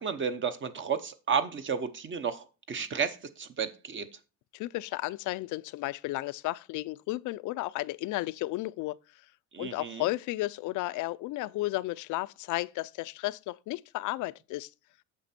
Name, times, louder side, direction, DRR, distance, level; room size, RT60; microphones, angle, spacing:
voice 1, 0.0-4.1 9.5-10.1, right 6 dB, 35° right, 0.8 m, -32 dB
voice 2, 4.5-9.0 9.6-14.7, left 18 dB, 65° left, 0.5 m, -33 dB
8.9 x 6.0 x 4.2 m
cardioid pair, 125°, 33 cm